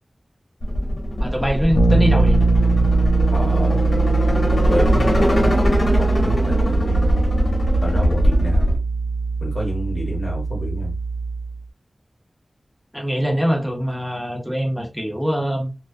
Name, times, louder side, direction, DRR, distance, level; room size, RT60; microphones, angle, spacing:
sound 1, 0.6-8.8, equal, 55° left, 0.9 m, -21 dB
voice 1, 1.2-2.4 12.9-15.8, equal, 5° left, 0.7 m, -23 dB
Bass guitar, 1.7-11.6, right 3 dB, 80° left, 0.6 m, -21 dB
voice 2, 3.3-3.8 4.7-7.5 7.8-8.7 9.4-11.0, left 1 dB, 40° left, 1.1 m, -29 dB
2.2 x 2.2 x 2.5 m
wide cardioid pair, 70°, 0 cm